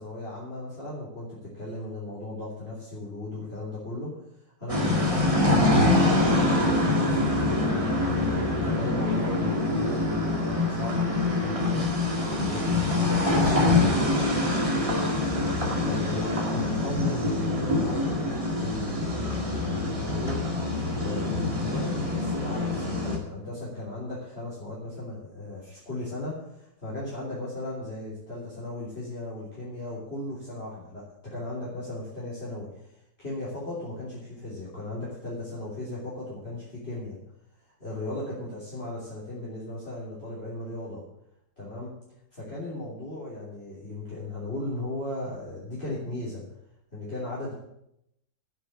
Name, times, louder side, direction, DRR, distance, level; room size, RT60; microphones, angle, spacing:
voice 1, 0.0-4.1 4.4-7.9 8.6-11.9 12.3-15.3 15.6-18.2 18.6-20.4 21.0-32.7 33.2-37.2 37.8-41.0 41.6-41.9 42.3-46.4 46.9-47.5, left 1 dB, 35° left, -7 dB, 3.7 m, -36 dB
sound 1, 4.7-23.2, left 2 dB, 20° right, 2.0 m, -25 dB
8.9 x 8.1 x 9.4 m, 0.80 s
omnidirectional pair, 1.9 m